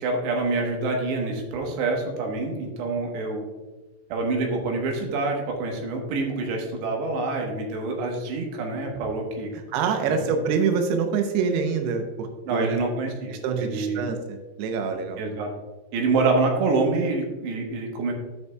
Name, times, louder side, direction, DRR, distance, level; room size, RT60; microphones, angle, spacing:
voice 1, 0.0-3.5 4.1-9.5 10.0-10.3 12.4-14.1 15.2-15.5 15.9-18.1, right 3 dB, 70° right, 1 dB, 3.0 m, -26 dB
voice 2, 9.7-12.8 13.3-15.2, right 5 dB, 90° right, 5 dB, 2.4 m, -26 dB
15.5 x 5.4 x 2.3 m, 1.2 s
omnidirectional pair, 5.7 m